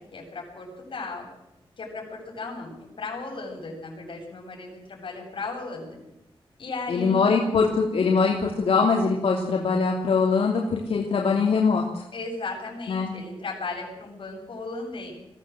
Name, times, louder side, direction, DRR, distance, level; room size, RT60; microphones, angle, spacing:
voice 1, 0.1-1.3 1.8-2.7 3.0-6.0 6.6-7.3 12.1-15.1, left 3 dB, 60° left, 0 dB, 8.0 m, -35 dB
voice 2, 6.9-12.0 12.9-13.1, left 4 dB, 90° left, -1 dB, 3.0 m, -22 dB
22.0 x 16.0 x 7.8 m, 0.88 s
wide cardioid pair, 135°, 10 cm